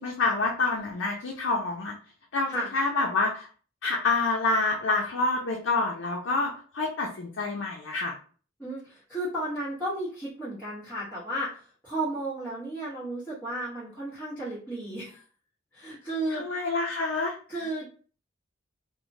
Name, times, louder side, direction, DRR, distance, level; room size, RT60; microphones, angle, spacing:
voice 1, 0.0-1.9 2.3-3.5 3.8-8.2 16.3-17.4, left 3 dB, 70° left, 0 dB, 0.5 m, -27 dB
voice 2, 8.6-15.2 15.7-16.4 17.5-17.9, right 1 dB, 10° left, -13 dB, 1.2 m, -33 dB
3.0 x 2.1 x 2.6 m, 0.41 s
head